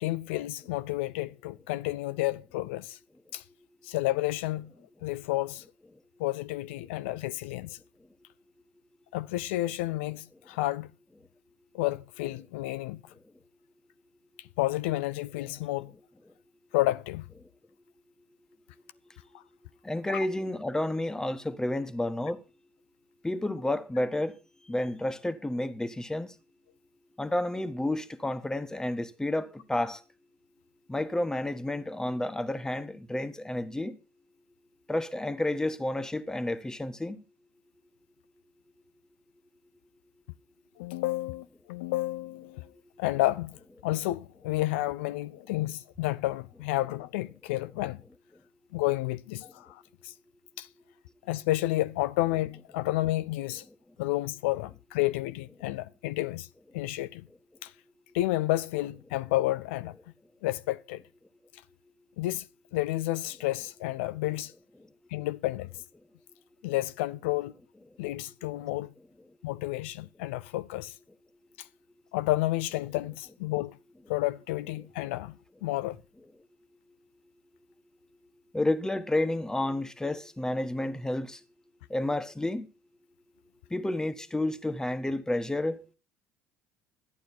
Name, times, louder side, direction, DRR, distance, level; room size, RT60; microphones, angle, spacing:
voice 1, 0.0-3.0 3.3-3.4 3.8-4.7 5.0-5.6 6.2-7.8 9.1-10.9 11.7-13.0 14.4-15.9 16.7-17.2 20.1-20.2 40.8-42.7 43.0-43.6 43.8-48.0 48.7-50.1 50.6-50.7 51.3-53.6 54.0-56.5 56.7-57.3 57.6-57.7 58.1-59.9 60.4-61.0 62.2-62.5 62.7-64.5 65.1-65.7 66.6-67.5 68.0-68.9 69.4-71.0 71.6-71.7 72.1-73.7 74.1-75.3 75.6-76.0, left 17 dB, 75° left, 0.5 m, -30 dB
voice 2, 19.8-22.4 23.2-24.4 24.6-26.3 27.2-30.0 30.9-34.0 34.9-37.2 78.5-81.4 81.9-82.7 83.7-85.8, left 1 dB, 10° left, 1.4 m, -30 dB
12.0 x 9.2 x 4.3 m
hypercardioid pair, 65°, 6 cm